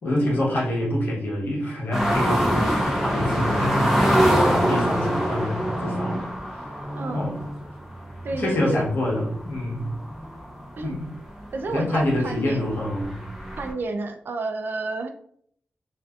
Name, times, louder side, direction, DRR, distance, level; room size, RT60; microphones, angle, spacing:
voice 1, 0.0-6.3 7.1-7.4 8.3-9.9 10.8-11.1 11.7-13.2, left 1 dB, 70° left, -4 dB, 1.0 m, -26 dB
sound 1, 1.9-11.0 11.4-11.5 12.0-13.7, equal, 5° right, 0.6 m, -24 dB
voice 2, 7.0-7.4 8.2-8.9 10.8-11.0 11.5-12.7 13.6-15.1, right 3 dB, 65° right, 6 dB, 0.3 m, -30 dB
2.6 x 2.4 x 2.3 m, 0.64 s
wide cardioid pair, 105°, 4 cm